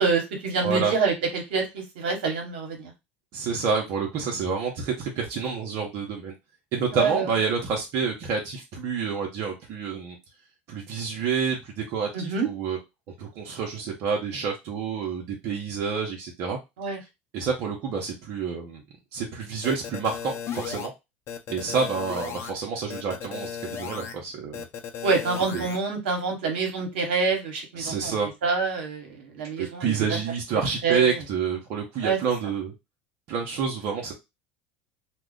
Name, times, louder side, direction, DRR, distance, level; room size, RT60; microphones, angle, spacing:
voice 1, 0.0-2.9 6.9-7.3 12.1-12.5 16.8-17.0 25.0-28.2 28.4-30.2 30.8-31.2 32.0-32.2, right 4 dB, 80° right, 2 dB, 1.1 m, -26 dB
voice 2, 0.6-0.9 3.3-6.3 6.7-10.2 10.7-12.8 13.2-16.6 17.3-18.8 19.1-20.9 21.5-24.6 25.5-25.7 27.8-28.3 29.6-32.7 33.3-34.1, right 6 dB, 60° right, 0 dB, 0.8 m, -28 dB
sound 1, 19.6-20.9 21.3-22.5 22.9-24.1 24.5-25.8, left 8 dB, 45° left, 0.6 m, -35 dB
2.3 x 2.2 x 3.7 m, 0.23 s
hypercardioid pair, 80°, 6 cm